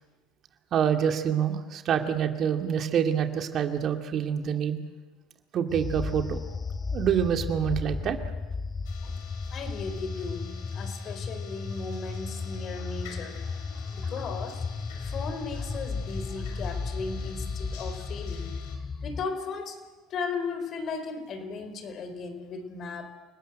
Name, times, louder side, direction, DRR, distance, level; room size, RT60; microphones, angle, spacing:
voice 1, 0.7-4.8 5.5-6.4 6.9-8.2, right 8 dB, 45° right, 5 dB, 2.3 m, -26 dB
sound 1, 5.7-19.3, left 4 dB, 25° left, 1.2 m, -34 dB
sound 2, 8.8-18.8, left 6 dB, 70° left, 4.8 m, -49 dB
voice 2, 9.5-13.4 13.9-14.6 15.0-18.5 19.0-19.8 20.1-23.1, left 4 dB, 45° left, 9 dB, 4.3 m, -36 dB
29.0 x 19.5 x 7.9 m, 1.3 s
hypercardioid pair, 70°, 0 cm